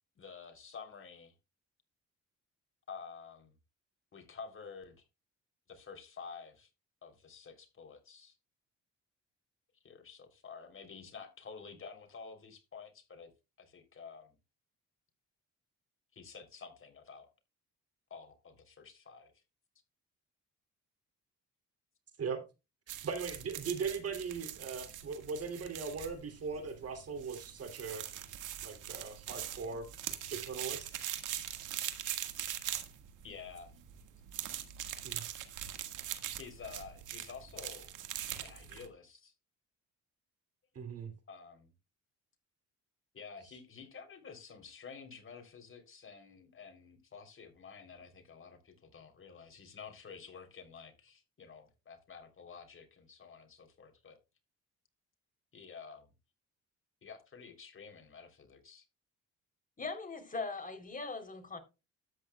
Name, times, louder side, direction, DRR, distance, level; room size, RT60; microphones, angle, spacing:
voice 1, 0.2-1.3 2.9-3.6 4.1-5.1 5.7-6.7 7.0-8.4 9.8-13.3 13.6-14.4 16.1-17.3 18.1-19.4 31.1-31.2 33.2-33.7 36.3-37.9 38.3-39.3 41.3-41.7 43.1-54.2 55.5-56.1 57.0-58.9, left 5 dB, 45° left, 3.4 m, -50 dB
voice 2, 22.9-28.1 28.6-29.9 30.3-31.0 35.0-35.2 40.7-41.1, right 5 dB, 50° right, 2.9 m, -39 dB
sound 1, 22.9-38.9, right 11 dB, 85° right, 1.8 m, -42 dB
voice 3, 59.8-61.6, left 3 dB, 25° left, 3.5 m, -40 dB
13.0 x 9.2 x 2.3 m
cardioid pair, 90°, 30 cm